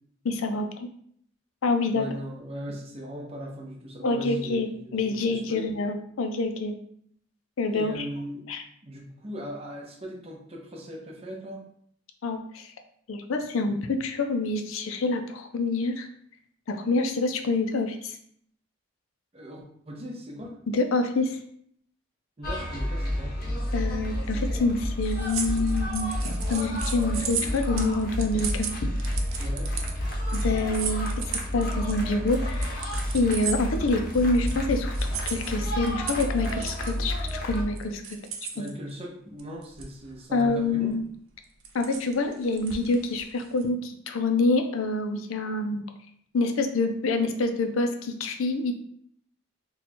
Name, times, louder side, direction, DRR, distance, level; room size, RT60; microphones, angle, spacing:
voice 1, 0.2-0.9 1.6-2.1 4.0-6.7 7.6-8.1 8.5-8.6 12.2-12.7 13.1-16.1 16.7-18.2 20.7-21.4 23.7-28.9 30.3-31.1 31.5-32.7 33.1-38.0 38.6-38.7 40.3-41.0 41.7-45.8 46.3-48.7, left 3 dB, 80° left, 6 dB, 0.5 m, -27 dB
voice 2, 1.9-5.0 5.3-5.7 7.7-8.5 8.8-11.6 19.3-20.6 22.4-23.3 29.4-29.7 38.5-41.0, equal, 30° right, 1 dB, 0.6 m, -39 dB
sound 1, 22.4-37.6, equal, 45° left, 0.7 m, -30 dB
sound 2, 25.0-34.6 34.9-38.7 39.4-40.1 40.4-40.6 41.4-43.6, right 7 dB, 85° right, 0.5 m, -35 dB
2.9 x 2.3 x 4.2 m, 0.65 s
head